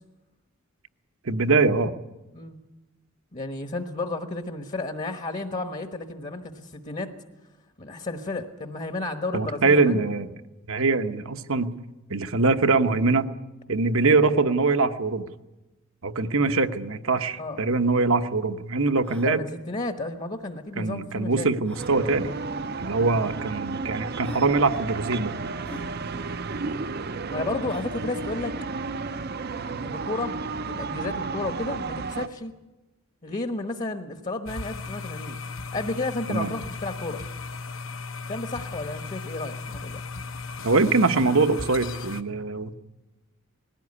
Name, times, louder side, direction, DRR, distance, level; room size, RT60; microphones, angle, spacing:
voice 1, 1.2-1.9 9.3-10.3 10.7-11.7 12.1-13.3 13.7-15.3 16.0-19.4 20.8-22.3 22.8-25.3 36.3-36.5 40.6-42.7, right 3 dB, 70° right, 9 dB, 1.1 m, -23 dB
voice 2, 3.3-7.1 7.8-10.0 17.4-17.6 19.2-21.5 27.3-28.6 29.8-30.4 30.7-32.5 33.2-35.4 35.7-37.2 38.3-40.0, left 2 dB, 35° left, 6 dB, 1.2 m, -32 dB
sound 1, 17.5-17.6 17.7-17.8 18.4-18.5 19.0-19.3 20.7-20.8 21.6-22.0 23.0-23.1 23.8-23.9 24.2-24.5 25.6-25.9 27.6-28.0, left 1 dB, 5° left, 0.8 m, -43 dB
sound 2, 21.8-32.3, right 4 dB, 45° right, 0.7 m, -32 dB
sound 3, 34.5-42.2, left 4 dB, 65° left, 1.1 m, -36 dB
20.0 x 16.5 x 9.8 m, 1.1 s
head